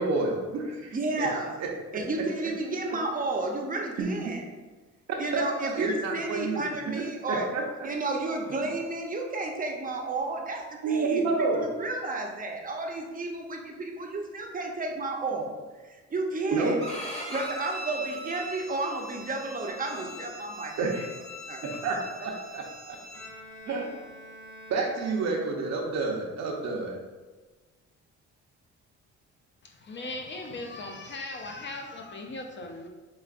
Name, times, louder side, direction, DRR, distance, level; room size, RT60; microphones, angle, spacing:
voice 1, 0.0-1.3 1.6-1.7 4.0-4.3 5.3-7.6 10.8-11.7 16.5-16.8 20.8-21.1 21.7-23.0 23.7-23.9 24.7-27.0, right 3 dB, 60° right, 0 dB, 0.8 m, -29 dB
voice 2, 0.9-1.6 1.9-4.5 5.2-7.5 7.8-15.5 15.8-16.8 17.3-20.9 21.5-21.6, right 2 dB, 30° right, 1 dB, 0.6 m, -32 dB
Bowed string instrument, 16.8-23.3, equal, 20° left, 1.0 m, -41 dB
Bowed string instrument 2, 23.1-25.8, left 1 dB, 80° left, 1.4 m, -47 dB
voice 3, 29.6-32.9, left 2 dB, 40° left, 3 dB, 0.5 m, -38 dB
4.8 x 2.4 x 2.4 m, 1.3 s
cardioid pair, 90°, 30 cm